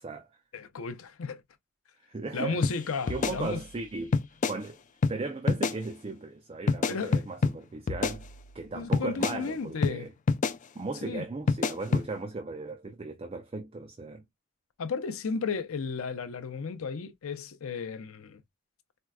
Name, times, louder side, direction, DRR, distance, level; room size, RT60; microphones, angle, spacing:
voice 1, 0.0-0.4 2.0-2.6 3.1-4.2 4.5-4.8 5.1-8.3 8.5-10.1 10.7-14.2, right 3 dB, 30° right, 0.5 m, -37 dB
voice 2, 0.5-1.4 2.3-3.6 6.9-7.2 8.7-10.1 11.0-11.2 14.8-18.4, left 5 dB, 90° left, 0.6 m, -34 dB
sound 1, 2.6-2.8 3.1-3.8 4.1-4.6 5.0-5.2 5.5-5.8 6.7-7.6 7.9-8.6 8.9-9.4 9.8-10.0 10.3-10.6 11.5-12.1, left 4 dB, 40° left, 0.4 m, -27 dB
4.4 x 2.1 x 2.3 m
head